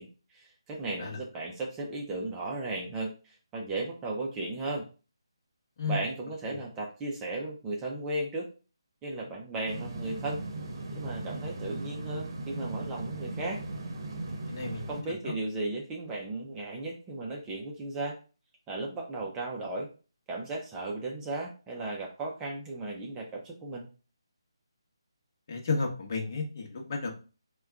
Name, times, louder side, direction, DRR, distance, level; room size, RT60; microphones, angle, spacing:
voice 1, 0.0-4.9 5.9-8.5 9.0-10.4 10.9-13.6 14.9-18.2 18.7-19.9 20.3-23.9, right 2 dB, 15° right, -2 dB, 0.5 m, -35 dB
sound 1, 9.7-15.0, right 2 dB, 50° right, 0.8 m, -38 dB
voice 2, 14.5-14.8 15.2-15.3 25.5-27.1, left 4 dB, 40° left, 2 dB, 0.9 m, -32 dB
3.4 x 2.2 x 3.5 m, 0.34 s
figure-of-eight pair, 160°, 3 cm